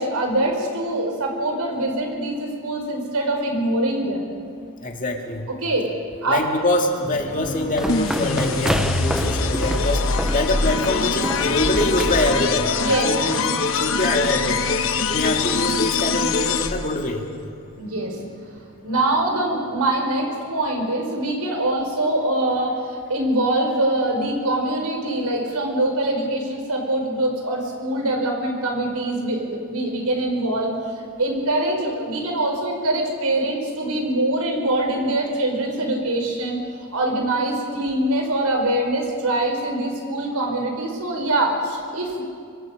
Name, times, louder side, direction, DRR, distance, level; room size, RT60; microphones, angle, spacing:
voice 1, 0.0-4.3 5.6-5.9 6.2-6.4 12.8-13.1 17.8-18.2 18.8-30.7 31.2-36.6 36.9-42.2, right 1 dB, 90° right, 1 dB, 5.3 m, -23 dB
voice 2, 4.8-5.5 6.3-12.7 13.0-13.4 13.7-14.6 15.0-17.2, left 1 dB, 35° left, 2 dB, 2.3 m, -24 dB
sound 1, 7.0-21.0, right 1 dB, 20° left, 3.2 m, -39 dB
sound 2, 7.4-12.5, equal, ahead, 0.6 m, -29 dB
sound 3, 7.9-17.0, left 4 dB, 60° left, 1.0 m, -23 dB
25.5 x 24.5 x 5.2 m, 2.3 s
head